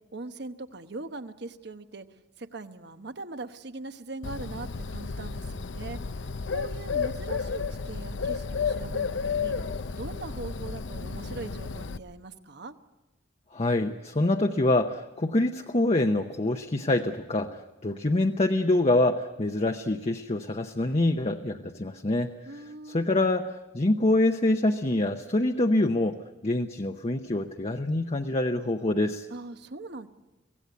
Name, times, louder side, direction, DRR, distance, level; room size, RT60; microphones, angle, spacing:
voice 1, 0.1-2.1 2.4-6.0 6.5-9.6 9.9-12.7 22.5-23.1 29.3-30.1, right 3 dB, 60° right, 9 dB, 1.1 m, -40 dB
Bird, 4.2-12.0, left 5 dB, 70° left, 0.7 m, -32 dB
voice 2, 13.5-22.3 22.9-29.3, left 2 dB, 35° left, 4 dB, 0.8 m, -25 dB
24.0 x 17.5 x 8.2 m, 1.0 s
head